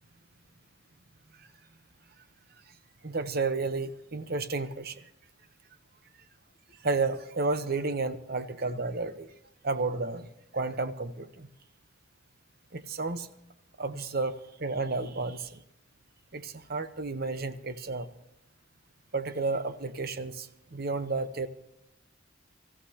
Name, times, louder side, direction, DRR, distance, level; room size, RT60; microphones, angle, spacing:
voice 1, 3.0-4.9 6.8-9.3 9.6-10.3 10.5-11.5 12.7-13.3 13.8-15.5 16.3-18.1 19.1-20.5 20.7-21.5, right 3 dB, 50° right, 11 dB, 0.9 m, -31 dB
26.0 x 15.0 x 2.9 m, 0.81 s
head